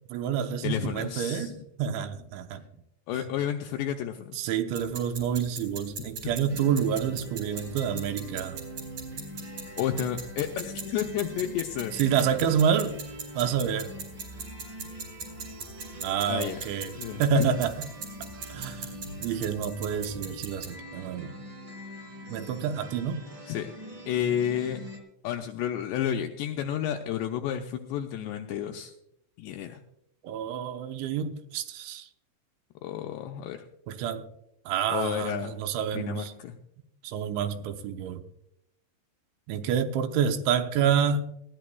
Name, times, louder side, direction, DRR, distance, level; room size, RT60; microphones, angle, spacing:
voice 1, 0.1-1.5 1.8-2.6 4.4-8.6 11.9-13.0 13.3-13.9 16.0-16.9 17.2-17.7 18.5-18.9 19.2-21.4 22.3-23.2 30.2-32.1 33.9-34.3 34.7-36.3 37.0-38.2 39.5-41.3, right 8 dB, 75° right, 3.0 m, -28 dB
voice 2, 0.6-1.6 3.1-4.5 6.2-6.3 9.8-11.9 16.3-16.6 17.0-17.5 23.5-23.7 24.1-24.8 25.2-28.9 29.4-29.8 32.8-33.6 34.9-35.6 35.9-36.5, left 10 dB, 85° left, 2.5 m, -31 dB
sound 1, 4.8-20.7, right 4 dB, 50° right, 3.6 m, -41 dB
sound 2, 6.5-25.0, right 1 dB, 25° right, 2.7 m, -43 dB
19.5 x 15.0 x 2.3 m
omnidirectional pair, 5.6 m